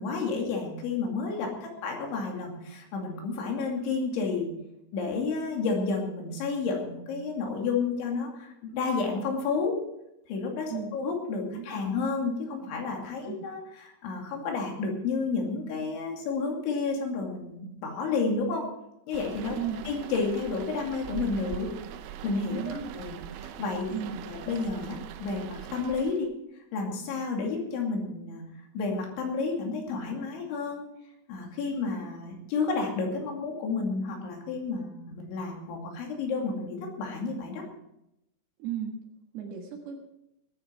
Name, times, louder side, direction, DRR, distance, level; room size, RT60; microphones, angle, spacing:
voice 1, 0.0-4.5 4.9-9.8 10.3-18.7 19.1-19.6 19.9-21.7 22.2-23.2 23.4-24.0 24.3-26.3 26.7-28.4 28.7-30.8 31.3-37.6, left 4 dB, 70° left, 1 dB, 4.8 m, -31 dB
voice 2, 11.5-11.9 13.2-13.5 19.5-19.8 22.5-22.9 23.9-24.2 38.6-39.0 39.3-40.0, right 8 dB, 65° right, 2 dB, 3.1 m, -35 dB
sound 1, 19.1-26.3, right 10 dB, 80° right, 3.2 m, -42 dB
19.5 x 10.0 x 4.6 m, 0.85 s
omnidirectional pair, 5.7 m